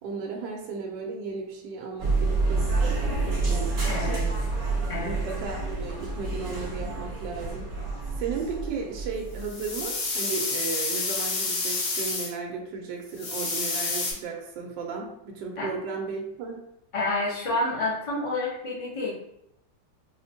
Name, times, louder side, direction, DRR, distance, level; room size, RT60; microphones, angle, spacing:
voice 1, 0.0-4.2 5.0-7.6 8.2-16.6, right 4 dB, 80° right, 1 dB, 1.3 m, -35 dB
sound 1, 2.0-9.8, right 3 dB, 45° right, 1.3 m, -28 dB
voice 2, 3.8-4.2 4.9-5.2 15.6-15.7 16.9-19.1, left 2 dB, 60° left, -5 dB, 0.3 m, -29 dB
sound 2, 9.4-12.3 13.2-14.1, left 3 dB, 85° left, 1.6 m, -29 dB
4.7 x 2.1 x 2.7 m, 0.78 s
omnidirectional pair, 2.0 m